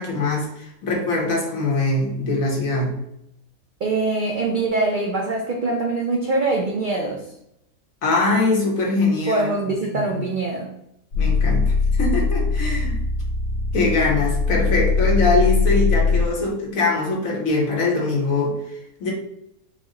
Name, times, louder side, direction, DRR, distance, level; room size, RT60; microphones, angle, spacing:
voice 1, 0.0-2.9 8.0-9.5 9.9-10.0 11.2-13.0 13.7-19.1, left 2 dB, 65° left, -2 dB, 1.5 m, -22 dB
voice 2, 3.8-7.2 9.3-10.7, right 3 dB, 90° right, 0 dB, 0.4 m, -23 dB
sound 1, 11.1-16.4, left 4 dB, 85° left, 1.6 m, -21 dB
5.0 x 2.1 x 3.7 m, 0.79 s
omnidirectional pair, 1.5 m